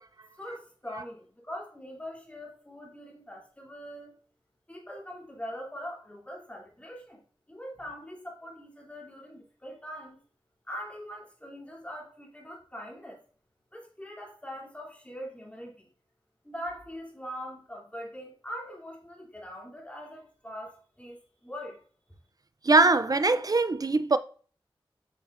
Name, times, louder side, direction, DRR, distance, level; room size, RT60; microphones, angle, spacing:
voice 1, 0.4-4.2 4.7-10.2 10.6-13.2 13.7-15.9 16.4-21.8, equal, 15° left, 2.6 m, -42 dB
voice 2, 22.6-24.2, right 3 dB, 40° right, 0.4 m, -22 dB
8.2 x 5.8 x 2.5 m
wide cardioid pair, 70°, 10 cm